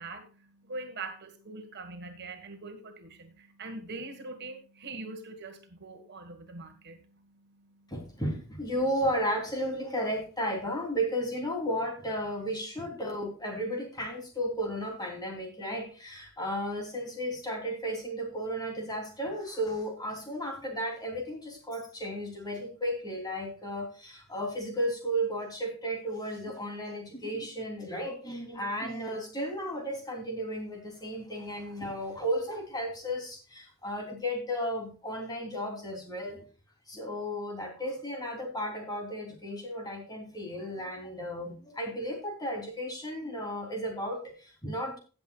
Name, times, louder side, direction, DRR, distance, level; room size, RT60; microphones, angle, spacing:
voice 1, 0.0-7.0, right 3 dB, 50° right, 6 dB, 1.6 m, -42 dB
voice 2, 7.9-36.4 36.9-45.0, equal, 20° left, 2 dB, 3.2 m, -34 dB
16.5 x 7.9 x 2.4 m, 0.35 s
head